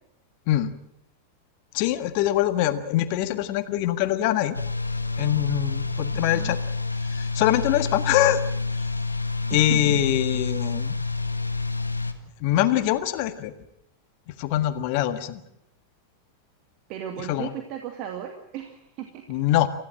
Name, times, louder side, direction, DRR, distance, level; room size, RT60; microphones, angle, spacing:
voice 1, 1.7-4.6 5.2-6.6 7.1-8.4 9.5-11.0 12.4-13.5 14.3-15.4 17.3-17.5 19.3-19.7, left 13 dB, 45° left, 11 dB, 1.6 m, -23 dB
sound 1, 4.5-12.1, left 3 dB, 85° left, 1.7 m, -28 dB
voice 2, 6.1-6.6 9.5-10.0 16.9-19.4, right 10 dB, 40° right, 4 dB, 2.4 m, -36 dB
28.5 x 15.5 x 7.7 m, 0.80 s
figure-of-eight pair, 90°, 0 cm